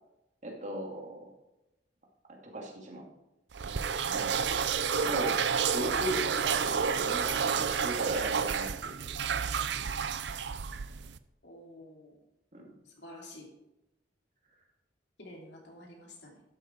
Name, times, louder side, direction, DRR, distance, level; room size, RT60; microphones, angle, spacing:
voice 1, 0.4-1.2 2.3-3.1 5.0-5.4 5.7-8.9 12.5-12.7, right 1 dB, 45° right, 0 dB, 2.5 m, -37 dB
sound 1, 3.5-11.2, right 6 dB, 80° right, 0.5 m, -30 dB
sound 2, 3.7-8.7, left 3 dB, 25° left, 1.0 m, -49 dB
voice 2, 11.4-12.2 12.8-13.5 15.2-16.4, left 1 dB, 70° left, -1 dB, 2.9 m, -49 dB
12.0 x 7.5 x 4.5 m, 0.90 s
head